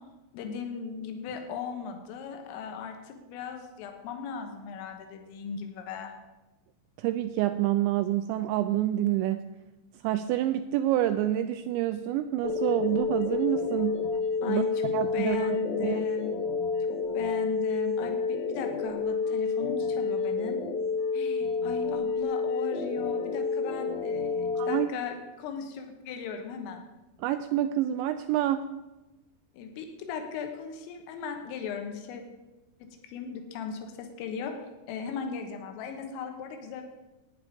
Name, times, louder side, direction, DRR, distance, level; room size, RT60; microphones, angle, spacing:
voice 1, 0.3-6.1 14.4-16.3 16.9-20.6 21.1-26.8 29.6-32.2 33.0-34.5 34.9-36.8, left 6 dB, 90° left, 4 dB, 3.9 m, -37 dB
voice 2, 7.0-9.4 10.0-14.0 14.5-14.6 14.9-16.0 24.6-24.9 27.2-28.6, right 13 dB, 90° right, 10 dB, 2.6 m, -27 dB
sound 1, 12.4-24.8, left 4 dB, 70° left, 2.3 m, -29 dB
14.5 x 9.7 x 5.2 m, 1.1 s
omnidirectional pair, 5.7 m